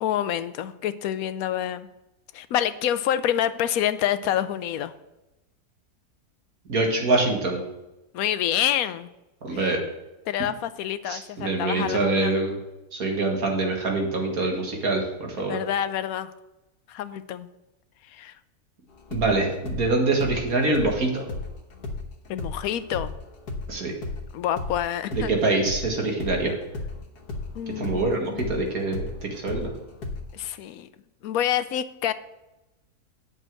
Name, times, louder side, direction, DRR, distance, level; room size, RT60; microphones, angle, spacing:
voice 1, 0.0-1.9 2.3-4.9 8.1-9.1 9.5-9.7 10.3-12.3 15.5-16.3 16.9-17.5 18.1-18.3 22.3-23.1 24.3-25.3 27.5-28.6 30.3-30.9 31.2-32.1, left 11 dB, 70° left, 13 dB, 1.0 m, -27 dB
voice 2, 6.7-7.6 9.4-9.8 11.1-12.6 12.9-15.6 19.1-21.3 23.7-23.9 25.1-26.5 27.8-29.7, right 2 dB, 65° right, 1 dB, 2.3 m, -25 dB
sound 1, 18.9-25.9 26.2-30.5, left 3 dB, 85° left, 1.7 m, -34 dB
8.8 x 6.4 x 7.7 m, 0.98 s
omnidirectional pair, 1.7 m